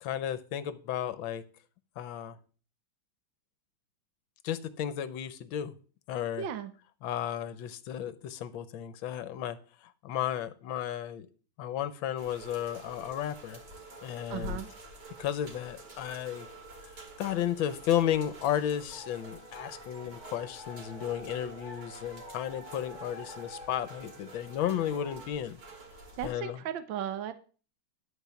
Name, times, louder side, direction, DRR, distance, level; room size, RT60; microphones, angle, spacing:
voice 1, 0.0-1.4 2.0-2.4 4.4-5.7 6.1-6.5 7.0-9.6 9.8-11.3 11.6-13.6 14.0-14.6 15.2-16.5 16.9-25.6 26.2-26.6, left 10 dB, 75° left, 14 dB, 1.4 m, -33 dB
voice 2, 6.4-6.7 14.3-14.7 26.2-27.3, right 9 dB, 70° right, 10 dB, 1.5 m, -36 dB
sound 1, 12.2-26.3, right 1 dB, 55° right, 2.7 m, -48 dB
sound 2, 18.9-25.3, left 1 dB, 35° left, 2.3 m, -48 dB
11.0 x 4.7 x 6.8 m, 0.39 s
omnidirectional pair, 2.3 m